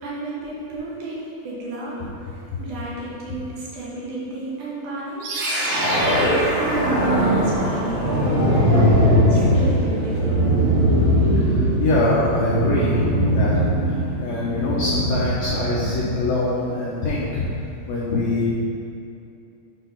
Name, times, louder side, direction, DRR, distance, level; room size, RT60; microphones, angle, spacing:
voice 1, 0.0-5.3 5.6-10.6, right 2 dB, 70° right, -6 dB, 2.4 m, -33 dB
sound 1, 5.2-16.3, equal, 85° right, 3.0 m, -20 dB
voice 2, 9.3-9.7 11.4-17.5 17.9-18.5, left 2 dB, 80° left, -7 dB, 1.5 m, -24 dB
6.3 x 4.1 x 5.4 m, 2.6 s
omnidirectional pair, 4.3 m